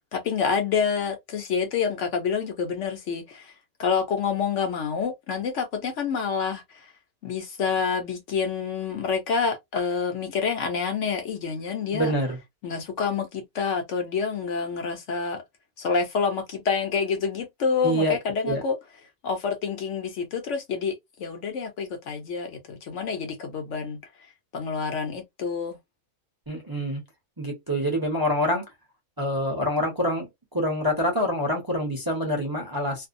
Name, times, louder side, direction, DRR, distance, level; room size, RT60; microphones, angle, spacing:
voice 1, 0.1-3.5 3.8-6.9 7.2-12.1 12.6-15.4 15.8-18.8 19.2-24.0 24.5-25.8, left 6 dB, 65° left, 0.9 m, -28 dB
voice 2, 11.9-12.4 17.8-18.2 18.4-18.6 26.5-27.0 27.4-28.6 29.2-33.1, equal, 20° right, 0.7 m, -26 dB
2.5 x 2.1 x 2.5 m
omnidirectional pair, 1.5 m